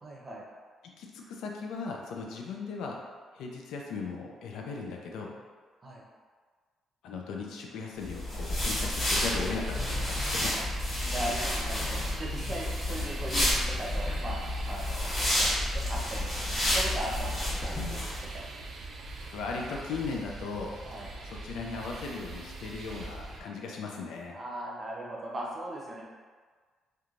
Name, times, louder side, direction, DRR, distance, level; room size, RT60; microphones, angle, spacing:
voice 1, 0.0-0.4 5.8-6.1 10.5-14.4 14.6-15.1 15.4-18.1 18.3-18.4 20.8-21.1 24.3-26.0, right 1 dB, 35° right, -4 dB, 0.7 m, -39 dB
voice 2, 0.8-3.0 3.3-5.3 7.0-10.6 19.3-20.8 21.2-24.4, left 4 dB, 85° left, 0 dB, 0.3 m, -37 dB
sound 1, 8.0-18.2, left 1 dB, 35° left, 1.2 m, -30 dB
sound 2, 9.1-23.4, right 2 dB, 65° right, 0.4 m, -42 dB
3.0 x 2.2 x 2.5 m, 1.5 s
cardioid pair, 90°, 0 cm